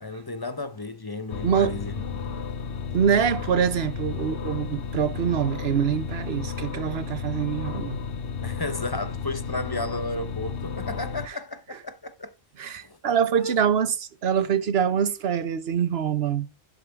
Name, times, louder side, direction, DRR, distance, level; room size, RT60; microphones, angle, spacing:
voice 1, 0.0-2.3 8.4-12.3 12.8-13.0 13.4-13.5, left 2 dB, 25° left, 0.9 m, -33 dB
sound 1, 1.3-11.3, left 6 dB, 65° left, 1.0 m, -33 dB
voice 2, 1.4-1.8 2.9-8.0 11.3-11.4 12.6-16.5, right 8 dB, 70° right, 1.2 m, -25 dB
11.5 x 11.0 x 3.5 m
omnidirectional pair, 1.1 m